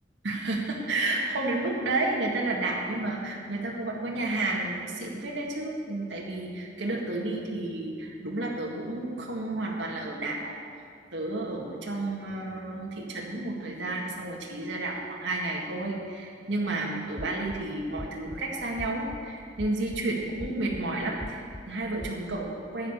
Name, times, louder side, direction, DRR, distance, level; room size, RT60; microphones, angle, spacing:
voice 1, 0.2-10.6 11.1-22.9, right 2 dB, 90° right, -2 dB, 1.8 m, -31 dB
sound 1, 17.2-17.6 18.0-18.4 18.8-19.2 19.6-20.0 20.4-20.8 21.2-21.6 22.0-22.2, left 1 dB, 10° left, 0.5 m, -40 dB
10.5 x 9.1 x 6.7 m, 2.3 s
head